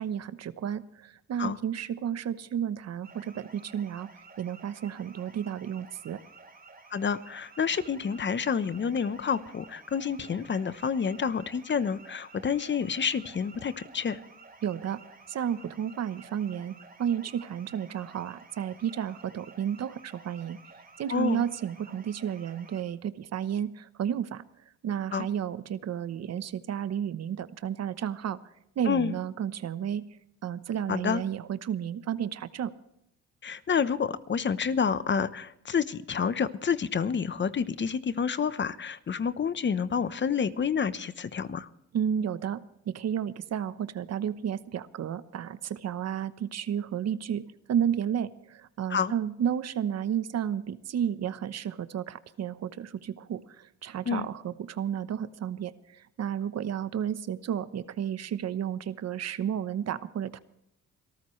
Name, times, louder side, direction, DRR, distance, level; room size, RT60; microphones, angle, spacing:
voice 1, 0.0-4.1 4.4-6.2 14.6-15.0 15.3-20.6 21.0-24.4 24.8-28.4 28.8-30.0 30.4-32.7 41.9-60.4, right 9 dB, 60° right, 14 dB, 1.0 m, -32 dB
sound 1, 3.0-22.8, right 3 dB, 30° right, 3.1 m, -52 dB
voice 2, 6.9-14.2 21.1-21.4 25.1-25.3 28.9-29.1 30.9-31.2 33.4-41.7 48.9-49.1 54.1-54.3, left 6 dB, 40° left, 14 dB, 1.0 m, -29 dB
26.5 x 14.0 x 3.2 m, 0.76 s
cardioid pair, 90°, 30 cm